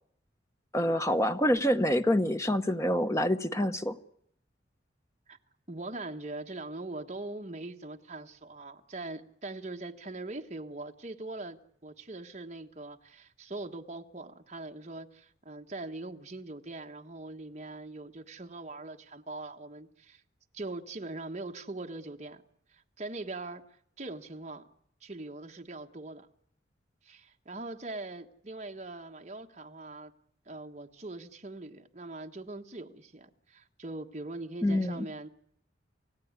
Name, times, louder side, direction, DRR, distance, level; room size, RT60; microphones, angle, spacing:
voice 1, 0.7-4.0 34.6-35.1, equal, 15° left, 1.0 m, -26 dB
voice 2, 5.7-20.2 20.5-22.4 22.7-24.6 25.0-26.3 27.0-30.1 30.4-35.3, right 2 dB, 35° right, 1.4 m, -42 dB
28.5 x 17.0 x 9.7 m
head